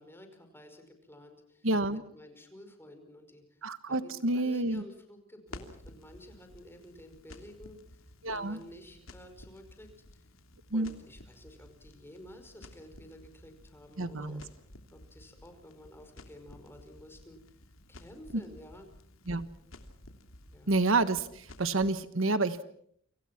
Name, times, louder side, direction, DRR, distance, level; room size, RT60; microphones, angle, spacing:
voice 1, 0.0-3.6 3.9-8.0 8.3-10.3 10.7-14.4 14.9-17.4 17.9-18.9 20.5-20.8, left 1 dB, 10° left, 6 dB, 5.2 m, -52 dB
voice 2, 1.6-2.0 3.6-4.8 8.2-8.6 10.7-10.9 14.0-14.4 18.3-18.4 19.3-19.5 20.7-22.6, right 2 dB, 70° right, 12 dB, 1.4 m, -29 dB
Crackle, 5.5-21.9, left 1 dB, 80° left, 3.0 m, -53 dB
29.0 x 26.5 x 6.0 m, 0.65 s
head